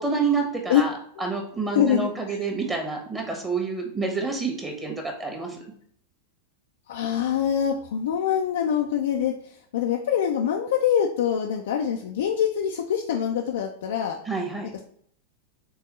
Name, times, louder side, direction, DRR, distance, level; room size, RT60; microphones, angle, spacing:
voice 1, 0.0-0.9 1.2-4.9 5.2-5.6 14.3-14.7, right 4 dB, 15° right, 2 dB, 1.3 m, -28 dB
voice 2, 1.7-2.4 6.9-14.2, left 9 dB, 60° left, 1 dB, 0.4 m, -24 dB
4.6 x 3.6 x 3.1 m, 0.64 s
figure-of-eight pair, 90°, 0 cm